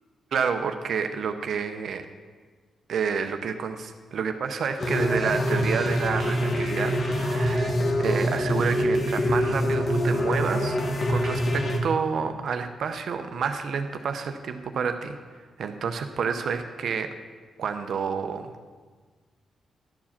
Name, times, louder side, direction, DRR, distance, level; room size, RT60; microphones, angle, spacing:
voice 1, 0.3-2.0 2.9-10.8 11.1-15.2 15.6-17.1 17.6-18.5, right 6 dB, 70° right, 7 dB, 0.6 m, -29 dB
sound 1, 4.8-11.8, equal, 50° left, 1.3 m, -25 dB
11.5 x 4.7 x 7.2 m, 1.4 s
cardioid pair, 75°, 0 cm